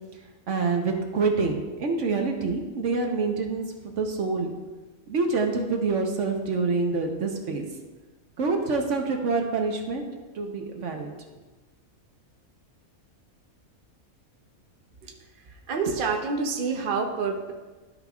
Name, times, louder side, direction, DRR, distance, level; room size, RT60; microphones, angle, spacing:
voice 1, 0.5-4.5 5.1-7.6 8.4-10.0 10.3-11.1, right 4 dB, 60° right, 3 dB, 1.1 m, -26 dB
voice 2, 15.5-17.5, right 4 dB, 45° right, 2 dB, 0.8 m, -28 dB
13.0 x 5.3 x 2.4 m, 1.2 s
omnidirectional pair, 1.5 m